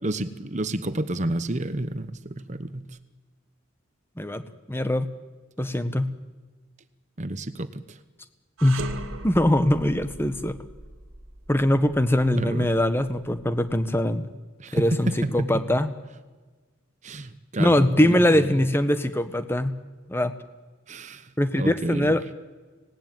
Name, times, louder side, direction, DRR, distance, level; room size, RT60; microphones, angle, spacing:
voice 1, 0.0-2.9 7.2-8.0 12.3-12.7 14.6-15.6 17.0-18.5 20.9-22.1, right 1 dB, 35° right, 12 dB, 1.0 m, -30 dB
voice 2, 4.7-5.1 5.6-6.1 8.6-9.0 9.2-10.6 11.5-14.3 14.7-15.9 17.6-19.7 20.1-20.3 21.4-22.2, left 1 dB, 10° left, 10 dB, 1.2 m, -22 dB
sound 1, 8.6-13.8, right 2 dB, 80° right, 2.0 m, -39 dB
26.0 x 18.5 x 9.3 m, 1.3 s
head